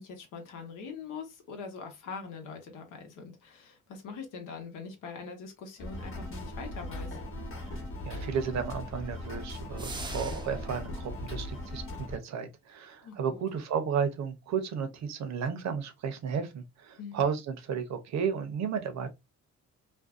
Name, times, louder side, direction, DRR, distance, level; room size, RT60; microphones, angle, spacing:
voice 1, 0.0-7.2 13.0-13.4 17.0-17.3, left 5 dB, 90° left, 0.9 m, -43 dB
sound 1, 5.8-12.2, left 1 dB, 45° left, 0.9 m, -39 dB
voice 2, 8.0-19.1, right 6 dB, 65° right, 0.7 m, -33 dB
sound 2, 9.8-10.8, right 3 dB, 15° right, 0.4 m, -41 dB
2.5 x 2.2 x 2.4 m
cardioid pair, 90°, 30 cm